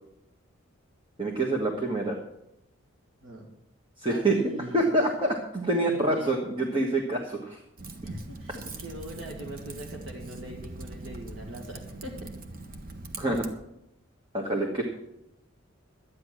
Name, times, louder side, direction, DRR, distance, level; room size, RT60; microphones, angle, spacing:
voice 1, 1.2-2.2 4.0-4.4 4.7-7.6 13.2-13.4 14.3-14.8, right 2 dB, 25° right, 0 dB, 1.4 m, -26 dB
voice 2, 3.2-3.5 4.0-4.9 6.2-6.3 8.0-12.3, right 1 dB, 75° right, -1 dB, 2.1 m, -41 dB
Typing, 7.8-13.5, right 2 dB, 45° right, 1.1 m, -42 dB
12.0 x 9.5 x 6.3 m, 0.82 s
head